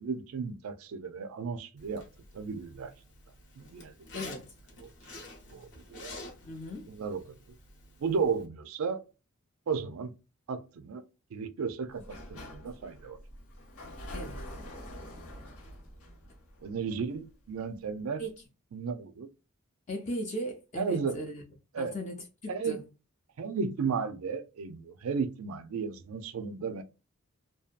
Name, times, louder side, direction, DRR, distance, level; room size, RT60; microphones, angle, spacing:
voice 1, 0.0-2.0 2.3-2.9 3.6-4.2 4.8-4.9 5.5-6.1 6.9-7.4 8.0-9.0 9.7-10.1 10.5-11.0 11.3-12.0 12.3-13.2 16.6-18.2 18.7-19.3 20.8-21.2 21.7-21.9 22.5-22.8 23.4-26.8, right 5 dB, 80° right, 0.4 m, -34 dB
Zipper (clothing), 1.8-8.5, left 2 dB, 55° left, 0.7 m, -49 dB
voice 2, 4.1-4.5 6.4-6.9 14.1-14.5 18.2-18.4 19.9-21.4 21.8-22.8, equal, 35° left, 0.4 m, -37 dB
Sliding door, 11.9-17.6, left 1 dB, 90° left, 0.9 m, -45 dB
2.6 x 2.2 x 2.4 m
head